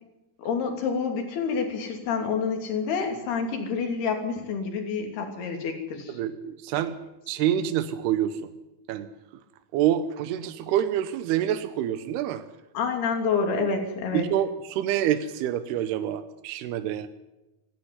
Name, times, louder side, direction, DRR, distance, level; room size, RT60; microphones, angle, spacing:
voice 1, 0.4-6.1 12.7-14.2, left 5 dB, 75° left, 4 dB, 4.9 m, -28 dB
voice 2, 6.1-7.0 7.3-8.5 8.9-9.4 9.7-12.5 14.1-17.1, right 11 dB, 85° right, 10 dB, 2.9 m, -27 dB
26.5 x 12.5 x 9.7 m, 1.0 s
omnidirectional pair, 4.6 m